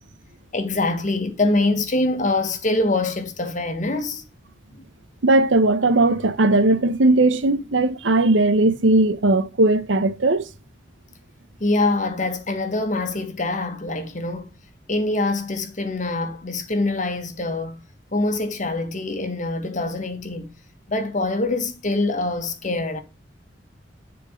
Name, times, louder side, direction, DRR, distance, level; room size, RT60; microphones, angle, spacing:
voice 1, 0.5-4.2 4.7-4.8 11.6-14.5 14.9-17.8 18.1-20.5 20.9-23.0, left 2 dB, 45° left, 1.5 m, -24 dB
voice 2, 5.2-10.5, right 2 dB, 90° right, 0.9 m, -18 dB
10.5 x 4.5 x 5.1 m
head